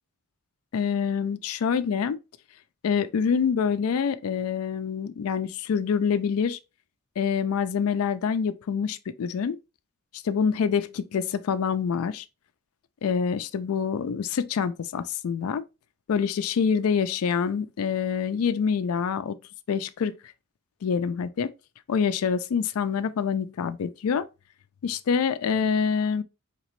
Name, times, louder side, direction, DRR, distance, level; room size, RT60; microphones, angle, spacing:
voice 1, 0.7-2.2 2.8-6.6 7.2-9.6 10.1-12.2 13.0-15.6 16.1-19.4 19.7-20.2 20.8-21.5 21.9-24.2 24.8-26.2, left 6 dB, 80° left, 0.4 m, -26 dB
4.1 x 2.9 x 3.0 m
head